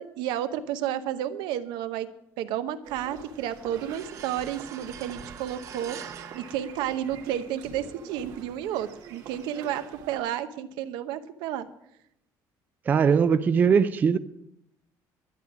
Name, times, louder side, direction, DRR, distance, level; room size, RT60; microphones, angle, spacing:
voice 1, 0.0-2.1 2.4-6.0 6.3-11.7, right 11 dB, 80° right, 0.9 m, -31 dB
sound 1, 2.8-10.2, right 6 dB, 55° right, 1.7 m, -46 dB
sound 2, 3.9-7.5, right 8 dB, 40° right, 0.8 m, -44 dB
voice 2, 12.9-14.2, right 6 dB, 20° right, 0.3 m, -20 dB
11.5 x 9.5 x 6.1 m
cardioid pair, 175°, 8 cm